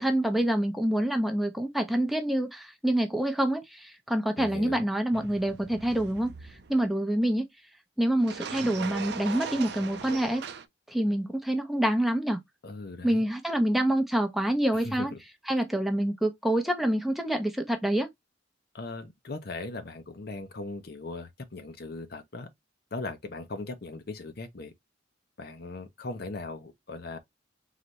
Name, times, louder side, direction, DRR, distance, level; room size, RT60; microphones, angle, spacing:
voice 1, 0.0-7.5 8.0-10.4 10.9-12.4 13.0-15.1 15.5-18.1, right 1 dB, ahead, 0.6 m, -27 dB
voice 2, 4.4-4.8 12.6-13.2 14.8-15.2 18.7-22.5 22.9-24.7 25.4-27.2, left 2 dB, 55° left, 0.8 m, -39 dB
sound 1, 5.1-6.9 8.2-10.6, right 5 dB, 60° right, 0.5 m, -39 dB
3.9 x 3.2 x 3.0 m
head